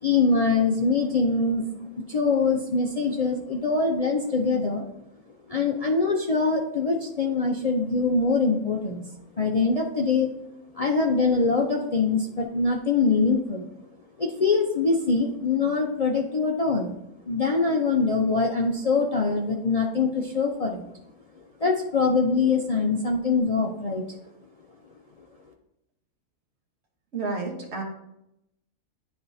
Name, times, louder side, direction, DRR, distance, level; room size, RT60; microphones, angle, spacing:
voice 1, 0.0-1.7 1.9-4.9 5.5-10.3 10.7-13.7 14.2-16.9 17.3-20.9 21.6-24.0, left 4 dB, 65° left, -1 dB, 0.3 m, -23 dB
voice 2, 27.1-27.8, right 3 dB, 50° right, 0 dB, 1.4 m, -30 dB
10.0 x 4.2 x 2.7 m, 0.82 s
omnidirectional pair, 1.5 m